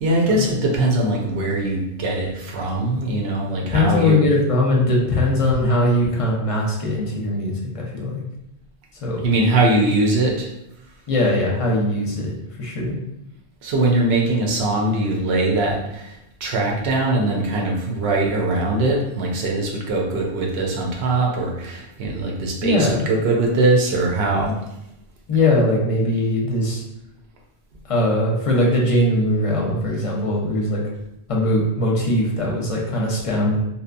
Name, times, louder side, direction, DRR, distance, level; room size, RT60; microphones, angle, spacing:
voice 1, 0.0-4.2 9.2-10.5 13.6-16.1 16.4-24.5, right 2 dB, 80° right, -1 dB, 0.9 m, -21 dB
voice 2, 3.7-8.2 8.9-9.2 11.1-13.0 22.6-23.0 25.3-26.8 27.8-30.8 31.3-33.6, left 1 dB, 40° left, -2 dB, 0.6 m, -20 dB
2.7 x 2.1 x 2.5 m, 0.85 s
omnidirectional pair, 1.1 m